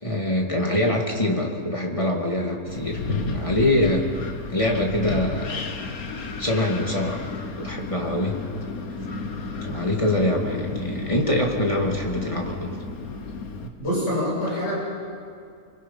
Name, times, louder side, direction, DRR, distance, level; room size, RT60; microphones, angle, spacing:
voice 1, 0.0-4.0 4.5-5.7 6.4-8.3 9.6-12.8 13.6-13.7, left 1 dB, 20° left, 0 dB, 2.3 m, -24 dB
Wind, 2.7-13.7, left 4 dB, 85° left, 1.8 m, -32 dB
voice 2, 13.8-14.7, equal, 55° left, -6 dB, 7.0 m, -25 dB
25.0 x 24.5 x 5.5 m, 2.3 s
omnidirectional pair, 1.5 m